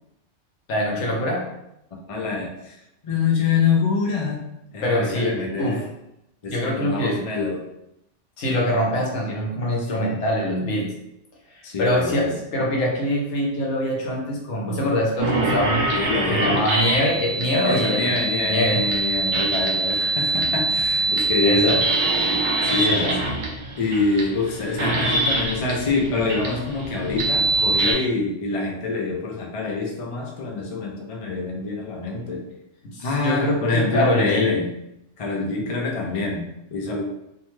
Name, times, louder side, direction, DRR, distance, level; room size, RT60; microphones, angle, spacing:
voice 1, 0.7-1.5 4.8-5.8 6.5-7.2 8.4-10.9 11.5-15.9 16.3-18.1 18.4-18.8 21.4-21.8 22.8-23.2 32.8-34.6, equal, 75° left, -2 dB, 1.0 m, -24 dB
voice 2, 2.1-2.8 3.0-4.4 4.7-5.8 6.4-7.6 11.6-12.4 15.9-16.6 17.6-21.8 22.6-23.1 23.8-32.4 33.0-34.7 35.2-37.0, left 4 dB, 50° left, -1 dB, 0.4 m, -25 dB
sound 1, 15.2-27.9, right 2 dB, 75° right, 0.9 m, -24 dB
2.7 x 2.2 x 3.0 m, 0.84 s
omnidirectional pair, 1.2 m